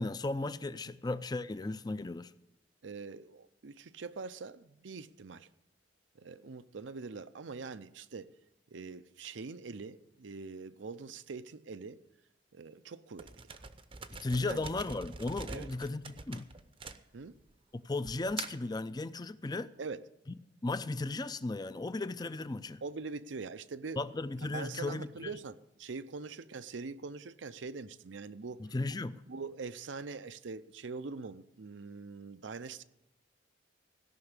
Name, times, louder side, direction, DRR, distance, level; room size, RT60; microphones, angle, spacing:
voice 1, 0.0-2.3 14.2-16.5 17.8-19.7 20.6-22.8 24.0-25.3 28.6-29.2, left 2 dB, 20° left, 0.4 m, -35 dB
voice 2, 2.8-5.5 6.2-8.3 8.7-12.0 12.5-13.6 14.4-14.7 15.5-15.7 17.1-17.4 19.8-20.0 22.8-24.0 24.4-28.6 29.3-32.8, right 4 dB, 85° right, 0.6 m, -43 dB
sound 1, 13.2-17.5 18.1-18.7, right 4 dB, 30° right, 0.7 m, -44 dB
16.5 x 5.9 x 8.1 m
head